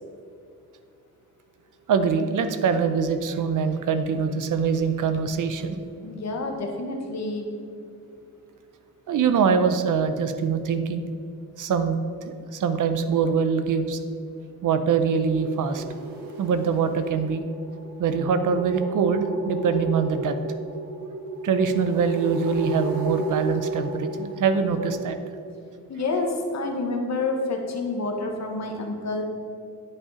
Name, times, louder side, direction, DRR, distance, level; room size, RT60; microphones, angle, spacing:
voice 1, 1.9-5.8 9.1-11.0 11.6-12.0 12.3-14.0 14.6-15.8 16.4-17.4 18.0-20.4 21.4-25.2, right 6 dB, 65° right, 10 dB, 0.6 m, -23 dB
voice 2, 6.0-7.5 25.9-29.2, left 3 dB, 50° left, 2 dB, 1.3 m, -28 dB
sound 1, 15.2-25.1, right 3 dB, 85° right, 1.1 m, -33 dB
9.7 x 5.7 x 4.9 m, 2.5 s
wide cardioid pair, 150°, 34 cm